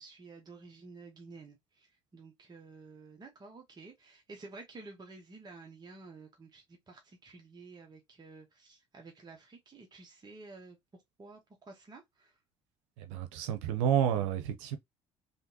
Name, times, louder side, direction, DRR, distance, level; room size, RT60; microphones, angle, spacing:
voice 1, 0.0-10.8 11.2-12.3, right 3 dB, 30° right, 1.2 m, -51 dB
voice 2, 13.0-14.8, right 9 dB, 85° right, 0.7 m, -30 dB
3.5 x 2.7 x 2.8 m
supercardioid pair, 80°, 15 cm